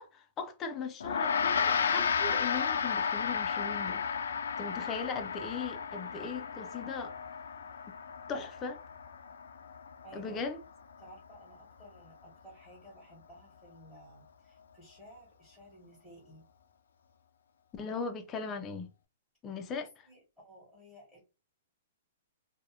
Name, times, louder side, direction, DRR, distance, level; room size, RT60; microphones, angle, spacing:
voice 1, 0.0-4.1 4.6-7.1 8.3-8.8 10.1-10.6 17.7-18.9 19.4-19.9, left 5 dB, 15° left, 0.4 m, -38 dB
Gong, 1.0-10.5, left 6 dB, 90° left, 0.3 m, -33 dB
voice 2, 10.0-10.4 11.0-16.5 19.5-21.2, equal, 5° right, 1.0 m, -55 dB
2.5 x 2.0 x 2.7 m
hypercardioid pair, 165°, 0 cm